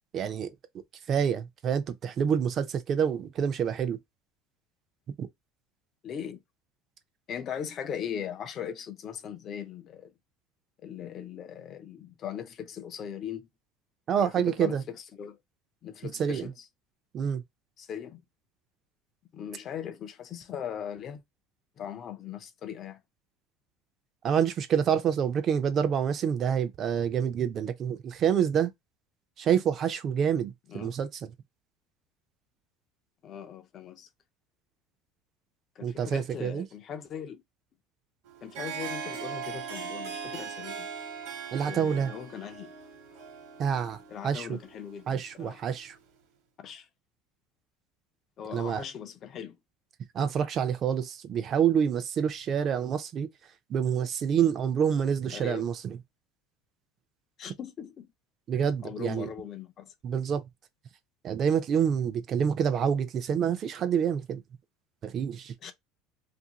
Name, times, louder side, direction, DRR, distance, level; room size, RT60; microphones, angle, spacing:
voice 1, 0.1-0.5 1.1-4.0 5.2-5.3 14.1-14.8 16.2-16.5 17.1-17.4 24.2-28.7 29.4-31.3 35.8-36.7 41.5-42.1 43.6-44.6 45.1-46.0 48.5-48.8 50.1-53.3 53.7-56.0 58.5-59.3 60.0-60.4 61.2-64.4 65.0-65.5, right 8 dB, 30° right, 0.4 m, -27 dB
voice 2, 6.0-6.4 7.3-10.1 10.8-13.5 14.2-14.8 15.2-15.4 15.8-16.5 17.8-18.2 19.3-21.2 21.8-23.0 30.7-31.0 33.2-34.1 35.8-37.4 38.4-40.9 41.6-42.7 44.1-45.6 46.6-46.9 48.4-49.6 55.3-55.7 57.4-58.1 58.8-59.8 65.6-65.7, left 8 dB, 30° left, 0.4 m, -39 dB
Harp, 38.3-46.0, right 6 dB, 70° right, 1.1 m, -40 dB
2.6 x 2.6 x 2.8 m
cardioid pair, 165°, 0 cm